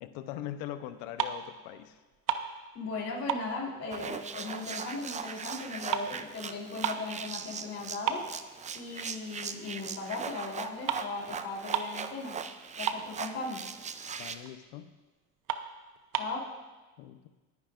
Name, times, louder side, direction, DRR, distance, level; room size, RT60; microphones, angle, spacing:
voice 1, 0.0-2.0 14.2-14.9 17.0-17.3, left 12 dB, 70° left, 10 dB, 0.9 m, -41 dB
sound 1, 0.9-1.6 1.9-3.0 3.3-4.8 5.1-7.2 7.6-7.7 8.1-9.1 9.6-9.8 10.6-10.7 10.9-11.1 11.4-11.5 11.7-12.1 12.4-12.5 12.7-13.5 13.9-14.0 14.5-14.6 15.0-15.1 15.4-16.4, right 9 dB, 55° right, 0.9 m, -34 dB
voice 2, 2.7-8.2 8.7-12.4 12.8-13.6 16.1-16.5, left 3 dB, 40° left, -3 dB, 3.7 m, -37 dB
sound 2, 3.9-14.4, right 6 dB, 20° right, 0.5 m, -40 dB
21.0 x 9.5 x 2.6 m, 1.2 s
supercardioid pair, 110°, 39 cm